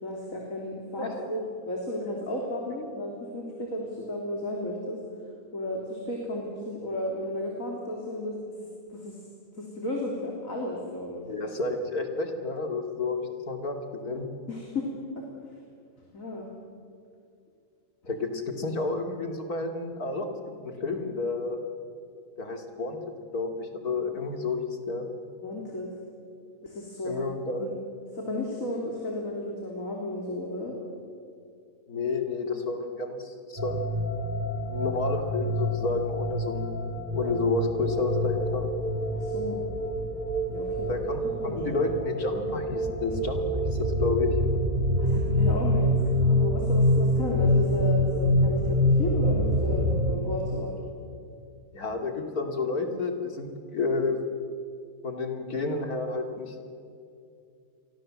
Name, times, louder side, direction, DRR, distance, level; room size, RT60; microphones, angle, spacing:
voice 1, 0.0-5.0 5.5-9.2 9.6-11.2 14.5-15.3 16.1-16.5 25.4-25.9 26.6-27.3 27.6-27.7 28.1-30.8 39.1-39.6 40.5-40.9 41.4-41.8 45.0-50.7, left 1 dB, 60° left, -1 dB, 3.8 m, -33 dB
voice 2, 11.3-14.3 18.1-20.3 20.6-21.6 22.4-23.0 23.3-24.6 24.9-25.1 27.0-27.7 31.9-34.0 34.7-36.8 37.1-38.6 40.9-44.3 51.7-54.2 55.0-56.7, left 3 dB, 75° left, 4 dB, 3.2 m, -30 dB
sound 1, 33.6-50.2, left 1 dB, 30° right, 2.4 m, -26 dB
30.0 x 23.5 x 7.6 m, 2.4 s
omnidirectional pair, 1.6 m